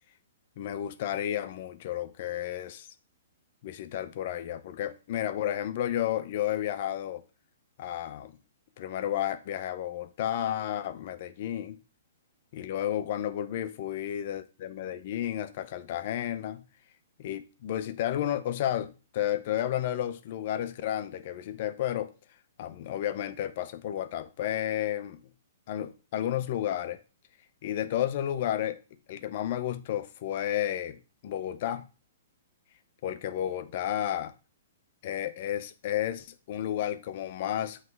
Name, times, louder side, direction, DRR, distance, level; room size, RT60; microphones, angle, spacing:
voice 1, 0.6-2.9 3.6-7.2 7.8-8.4 8.8-11.8 12.5-16.7 17.2-22.1 22.6-25.2 25.7-27.0 27.6-28.8 29.1-31.9 33.0-34.3 35.0-37.8, left 11 dB, 50° left, 0.6 m, -32 dB
7.7 x 3.2 x 4.7 m
hypercardioid pair, 150°, 0 cm